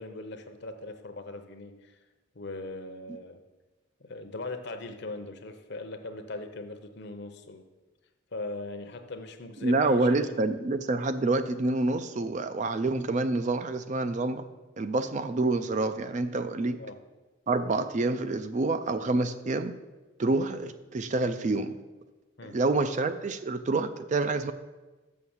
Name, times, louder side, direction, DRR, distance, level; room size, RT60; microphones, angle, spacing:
voice 1, 0.0-2.0 2.3-3.4 4.0-7.6 8.3-10.4 16.8-16.9 22.4-22.5, left 2 dB, 50° left, 7 dB, 0.8 m, -40 dB
voice 2, 9.6-14.5 14.8-16.8 17.5-19.7 20.2-21.7 22.4-24.5, right 2 dB, 35° right, 10 dB, 0.4 m, -27 dB
6.7 x 6.4 x 7.1 m, 1.2 s
head